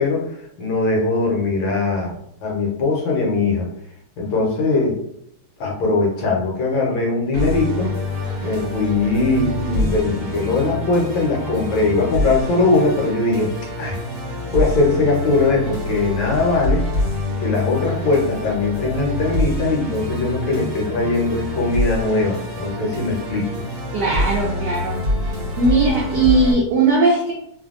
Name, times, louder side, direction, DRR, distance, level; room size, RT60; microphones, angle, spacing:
voice 1, 0.0-3.7 4.2-5.0 5.6-7.9 8.4-13.5 13.8-14.0 14.5-16.9 17.4-23.6, left 3 dB, 70° left, -2 dB, 1.4 m, -20 dB
Musical instrument, 7.3-26.5, left 1 dB, 50° right, 1.1 m, -26 dB
voice 2, 23.9-25.0 25.6-27.3, right 3 dB, 80° right, -2 dB, 0.9 m, -18 dB
3.3 x 2.2 x 2.4 m, 0.74 s
omnidirectional pair, 2.3 m